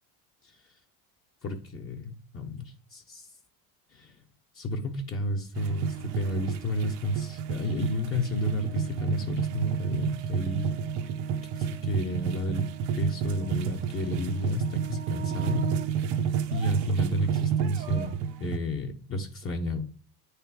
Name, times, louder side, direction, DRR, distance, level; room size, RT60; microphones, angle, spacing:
voice 1, 1.4-3.3 3.9-4.2 4.5-10.8 11.4-12.7 13.0-15.7 16.5-18.1 18.4-19.8, left 1 dB, 30° left, 1 dB, 0.9 m, -32 dB
sound 1, 5.5-18.6, right 8 dB, 65° right, 0.7 m, -30 dB
8.6 x 3.3 x 4.6 m, 0.42 s
supercardioid pair, 115°, 43 cm